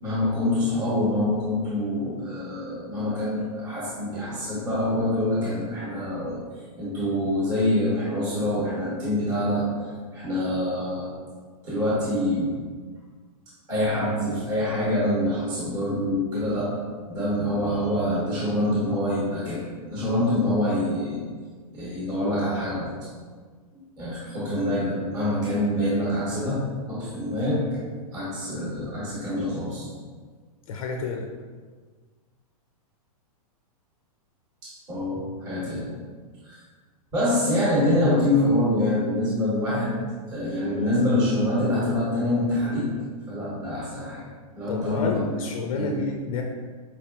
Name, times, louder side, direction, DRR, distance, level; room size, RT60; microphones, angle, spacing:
voice 1, 0.0-6.4 6.8-9.7 10.1-11.1 11.6-12.5 13.7-16.7 17.1-21.2 21.7-22.9 24.0-27.7 28.1-29.9 34.6-35.9 36.4-36.6 37.1-40.0 40.3-42.9 43.3-44.2 44.6-45.3 45.7-46.0, left 1 dB, 20° right, -7 dB, 0.8 m, -25 dB
voice 2, 30.7-31.3 44.7-46.4, left 4 dB, 65° left, 2 dB, 0.4 m, -30 dB
4.5 x 2.8 x 2.2 m, 1.5 s
supercardioid pair, 165°, 19 cm